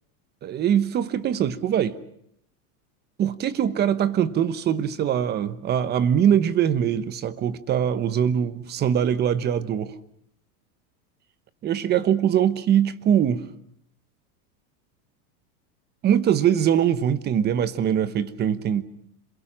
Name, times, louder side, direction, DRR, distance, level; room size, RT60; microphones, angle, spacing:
voice 1, 0.4-2.0 3.2-10.0 11.6-13.4 16.0-18.8, right 9 dB, 20° right, 1.0 m, -22 dB
27.5 x 22.0 x 7.4 m
supercardioid pair, 160°, 45 cm